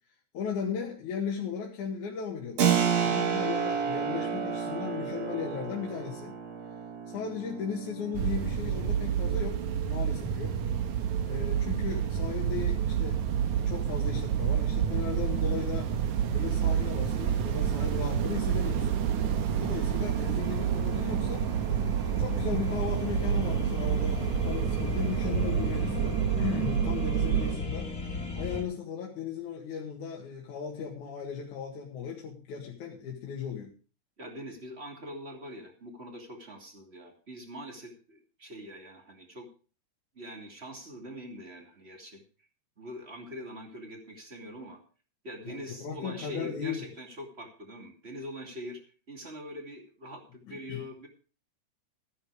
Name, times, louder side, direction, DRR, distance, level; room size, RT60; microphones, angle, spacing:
voice 1, 0.3-2.6 3.0-6.3 7.1-9.6 9.9-10.5 11.2-15.9 16.3-18.9 19.6-21.5 22.2-27.9 28.3-33.7 45.4-46.8 50.5-50.8, left 7 dB, 70° left, -1 dB, 3.2 m, -36 dB
Keyboard (musical), 2.6-13.0, right 7 dB, 55° right, 2.9 m, -32 dB
sound 1, 8.1-27.6, right 9 dB, 70° right, 2.5 m, -29 dB
sound 2, 19.8-28.6, left 3 dB, 30° left, 2.6 m, -37 dB
voice 2, 34.2-39.5 40.1-42.2 42.8-44.8 45.2-48.8 49.1-51.1, equal, 20° right, 3 dB, 2.6 m, -43 dB
13.5 x 10.5 x 4.9 m, 0.37 s
omnidirectional pair, 3.5 m